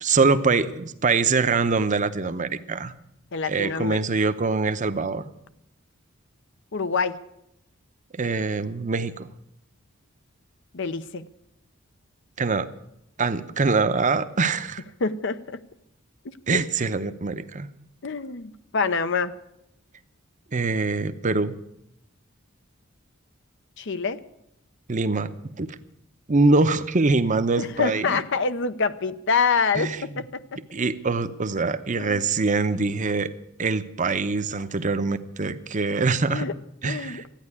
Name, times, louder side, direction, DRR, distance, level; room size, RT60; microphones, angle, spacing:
voice 1, 0.0-2.9 3.5-5.3 8.1-9.3 12.4-12.7 13.2-14.8 16.5-17.7 20.5-21.5 24.9-25.3 25.6-25.7 26.3-28.2 29.8-30.2 30.7-33.3 33.6-36.5 36.8-37.2, right 3 dB, 40° right, 11 dB, 0.8 m, -24 dB
voice 2, 3.3-4.0 6.7-7.2 10.7-11.2 15.0-15.6 16.2-16.6 18.0-19.3 23.8-24.2 27.6-30.4 32.0-32.2 36.3-36.5 36.8-37.2, left 4 dB, 60° left, 12 dB, 0.8 m, -26 dB
13.5 x 9.8 x 9.7 m, 0.81 s
head